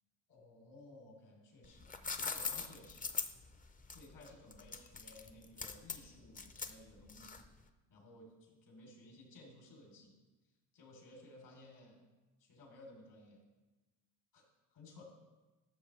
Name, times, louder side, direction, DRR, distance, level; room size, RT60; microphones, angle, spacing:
voice 1, 0.3-3.1 3.9-7.4 7.9-10.2 10.7-12.0 12.4-13.4 14.3-14.4 14.7-15.1, left 2 dB, 70° left, 0 dB, 3.2 m, -57 dB
sound 1, 1.6-7.6, left 5 dB, 20° left, 0.5 m, -42 dB
13.5 x 6.3 x 3.2 m, 1.2 s
supercardioid pair, 85°, 42 cm